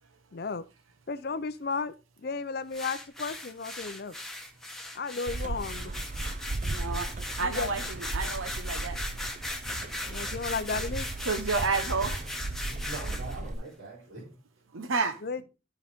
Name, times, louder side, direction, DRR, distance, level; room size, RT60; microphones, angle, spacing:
voice 1, 0.3-0.6 1.1-1.9 2.2-4.1 5.0-5.9 7.4-7.7 10.1-11.1 15.2-15.4, left 4 dB, 50° left, 0.5 m, -33 dB
sound 1, 2.7-13.4, left 1 dB, ahead, 1.1 m, -38 dB
sound 2, 5.3-13.5, right 2 dB, 35° right, 0.6 m, -36 dB
voice 2, 6.7-7.1 7.4-9.0 11.2-12.2 14.7-15.2, right 4 dB, 85° right, 1.1 m, -30 dB
voice 3, 10.0-10.5 12.7-14.3, right 2 dB, 60° right, 4.1 m, -43 dB
13.0 x 4.8 x 3.5 m
head